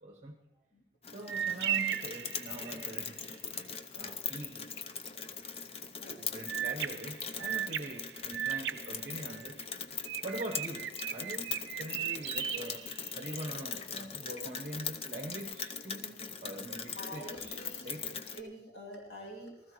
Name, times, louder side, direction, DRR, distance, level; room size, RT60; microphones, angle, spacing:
voice 1, 0.0-0.4 1.1-3.4 3.9-4.7 5.1-5.5 6.1-9.6 10.2-18.2, right 1 dB, 45° right, 2 dB, 1.0 m, -44 dB
Rain, 1.0-18.4, left 6 dB, 35° left, 0.6 m, -41 dB
sound 1, 1.3-3.0 6.5-9.6 10.0-13.5, right 10 dB, 90° right, 0.5 m, -37 dB
voice 2, 17.0-19.7, equal, 65° left, -2 dB, 2.9 m, -47 dB
19.5 x 14.0 x 3.0 m, 0.90 s
head